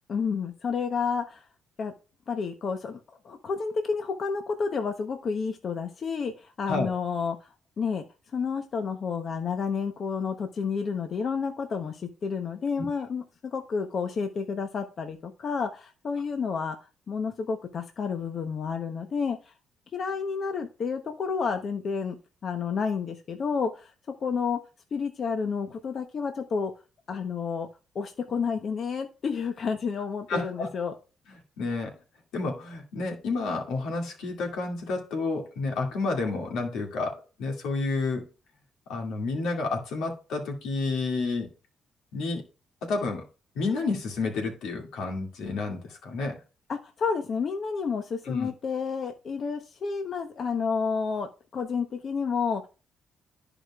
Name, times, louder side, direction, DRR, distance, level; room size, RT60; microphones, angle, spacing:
voice 1, 0.1-1.5 1.8-1.9 2.3-7.5 7.8-8.0 8.3-16.8 17.1-19.5 19.9-22.2 22.4-23.9 24.2-24.6 24.9-26.7 27.1-27.7 27.9-30.9 46.7-52.7, left 5 dB, 50° left, 0.9 m, -30 dB
voice 2, 30.3-30.7 31.6-32.0 32.3-38.2 38.9-41.5 42.1-42.4 42.8-43.2 43.6-46.4 48.2-48.5, left 3 dB, 90° left, 2.3 m, -30 dB
13.0 x 5.0 x 2.4 m
cardioid pair, 90°, 0 cm